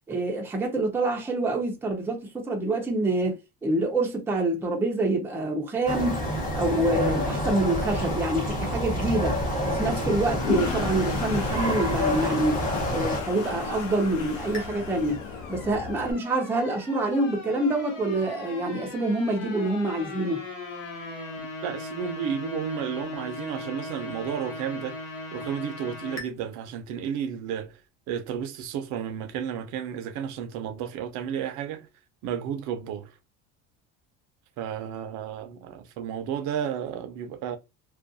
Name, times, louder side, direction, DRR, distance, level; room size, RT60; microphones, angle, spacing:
voice 1, 0.1-6.2 6.5-9.4 9.7-12.6 12.9-15.2 15.5-20.4, right 2 dB, 5° right, 0.4 m, -26 dB
sound 1, 5.9-13.2, equal, 25° left, 0.8 m, -28 dB
Toilet flush, 10.0-16.1, left 6 dB, 65° left, 0.8 m, -34 dB
sound 2, 14.5-26.3, left 2 dB, 80° left, 1.1 m, -39 dB
voice 2, 21.4-25.0 25.3-27.8 28.1-31.9 32.2-33.1 34.6-37.6, right 8 dB, 60° right, 0.5 m, -32 dB
2.4 x 2.2 x 2.5 m
cardioid pair, 135°, 33 cm